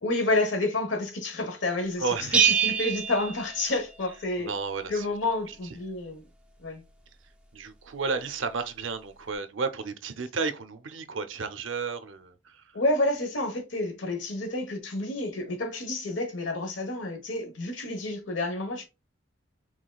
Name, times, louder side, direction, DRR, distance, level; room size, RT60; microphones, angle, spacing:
voice 1, 0.0-2.0 2.3-4.5 4.9-6.3 6.6-6.8 12.7-18.8, left 2 dB, 75° left, 1.1 m, -29 dB
voice 2, 2.0-2.6 4.4-5.1 5.5-5.6 7.5-12.8, right 4 dB, 85° right, 0.6 m, -33 dB
Bell, 2.3-4.2, right 7 dB, 5° right, 0.4 m, -25 dB
4.9 x 3.6 x 2.3 m
head